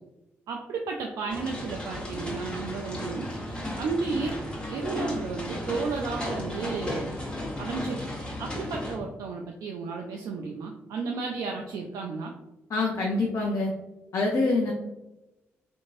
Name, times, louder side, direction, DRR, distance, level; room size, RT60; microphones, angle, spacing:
voice 1, 0.5-4.4 4.7-7.1 7.6-12.3, right 4 dB, 65° right, 1 dB, 0.3 m, -33 dB
sound 1, 1.3-9.0, left 1 dB, 15° left, 1.2 m, -35 dB
voice 2, 12.7-13.7 14.1-14.7, left 3 dB, 55° left, -2 dB, 0.5 m, -25 dB
2.9 x 2.6 x 2.5 m, 0.96 s
hypercardioid pair, 40°, 6 cm